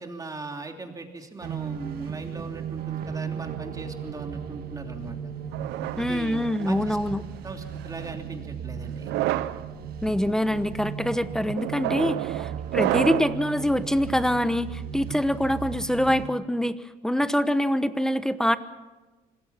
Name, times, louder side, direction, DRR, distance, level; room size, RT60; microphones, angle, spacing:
voice 1, 0.0-5.3 6.0-7.0 7.4-9.1 12.4-12.5 15.1-15.2, right 3 dB, 20° right, 3 dB, 3.1 m, -39 dB
Somethings Coming - Atmosphere - by Dom Almond, 1.4-16.3, right 8 dB, 65° right, 1.9 m, -36 dB
sound 1, 5.5-6.9 7.7-8.1 8.9-9.6 10.3-10.6 11.6-13.4, right 14 dB, 85° right, 0.8 m, -29 dB
voice 2, 6.0-7.2 10.0-18.6, equal, 5° left, 12 dB, 1.0 m, -25 dB
26.5 x 20.5 x 5.9 m, 1.2 s
cardioid pair, 110°, 17 cm